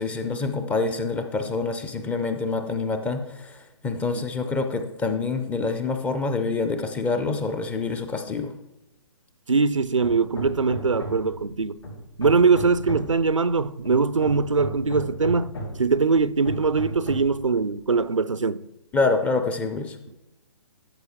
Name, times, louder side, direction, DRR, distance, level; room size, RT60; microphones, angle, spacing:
voice 1, 0.0-8.5 18.9-20.0, left 3 dB, 10° left, 0.5 m, -26 dB
voice 2, 3.9-4.2 9.5-11.8 12.2-18.7, right 4 dB, 85° right, 0.5 m, -22 dB
Hammer, 10.0-11.4 11.8-13.2 13.8-15.9 16.4-17.4, equal, 65° left, 3.8 m, -34 dB
13.0 x 6.3 x 3.6 m
figure-of-eight pair, 130°, 16 cm